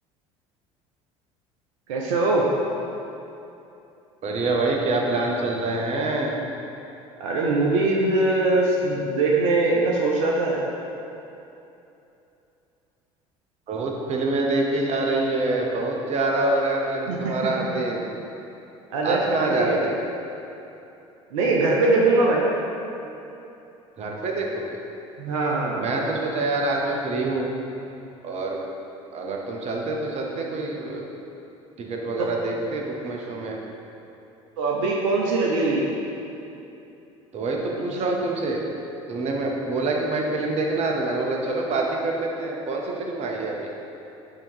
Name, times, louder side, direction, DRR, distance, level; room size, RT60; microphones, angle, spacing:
voice 1, 1.9-2.4 7.2-10.6 17.1-17.4 18.9-20.0 21.3-22.5 25.2-25.8 34.6-35.9, right 2 dB, 70° right, -2 dB, 0.7 m, -22 dB
voice 2, 4.2-6.3 13.7-18.1 19.0-19.9 24.0-24.8 25.7-27.5 28.2-28.6 29.1-31.1 31.8-33.6 37.3-38.6 39.1-43.7, right 2 dB, 40° right, 0 dB, 0.9 m, -26 dB
6.6 x 3.0 x 5.5 m, 2.9 s
figure-of-eight pair, 65°, 17 cm